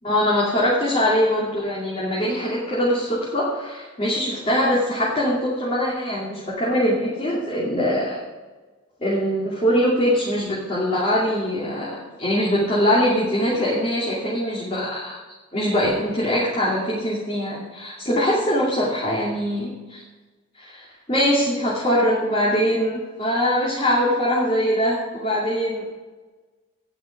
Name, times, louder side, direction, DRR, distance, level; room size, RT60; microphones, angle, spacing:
voice 1, 0.0-8.2 9.0-15.2 15.5-20.0 20.5-25.8, equal, 30° left, -7 dB, 2.6 m, -22 dB
18.0 x 6.0 x 5.4 m, 1.3 s
head